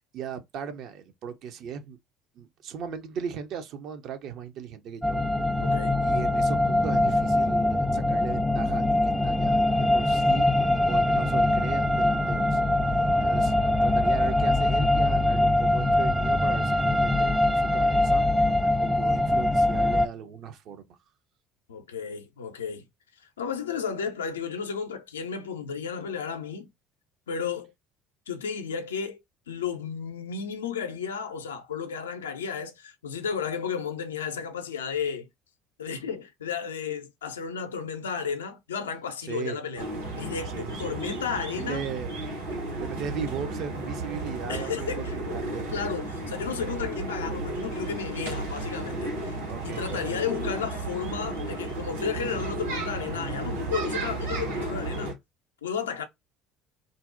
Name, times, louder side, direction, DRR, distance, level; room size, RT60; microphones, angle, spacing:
voice 1, 0.1-2.0 2.4-5.2 6.0-10.5 10.9-12.6 13.2-13.5 13.8-18.3 18.8-21.0 39.3-39.6 40.5-41.0 41.6-42.1 42.8-45.7 49.5-50.4, right 7 dB, 55° right, 0.5 m, -37 dB
sound 1, 5.0-20.1, left 1 dB, ahead, 0.3 m, -23 dB
voice 2, 5.6-6.1 13.1-13.3 21.7-22.9 23.4-26.7 27.3-27.7 28.3-29.2 29.5-35.3 35.8-39.9 40.1-41.8 44.5-45.3 45.7-49.4 49.6-55.1 55.6-56.0, left 6 dB, 80° left, 0.4 m, -33 dB
sound 2, 39.7-55.1, right 2 dB, 80° right, 1.1 m, -33 dB
2.6 x 2.0 x 2.4 m
figure-of-eight pair, 60°, 0 cm